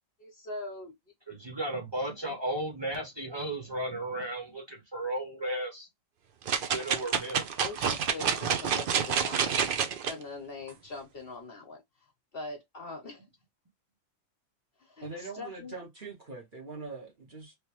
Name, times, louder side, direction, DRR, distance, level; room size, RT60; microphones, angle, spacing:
voice 1, 0.2-0.9 7.6-9.8 10.1-11.8 12.3-13.2 14.8-15.7, left 3 dB, 50° left, 1.1 m, -42 dB
voice 2, 1.3-5.9 6.7-7.5, right 1 dB, 20° right, 1.2 m, -34 dB
sound 1, 6.5-10.1 10.7-10.8, right 7 dB, 55° right, 0.6 m, -28 dB
voice 3, 15.0-17.5, right 3 dB, 40° right, 1.3 m, -42 dB
3.3 x 2.9 x 2.9 m
omnidirectional pair, 1.4 m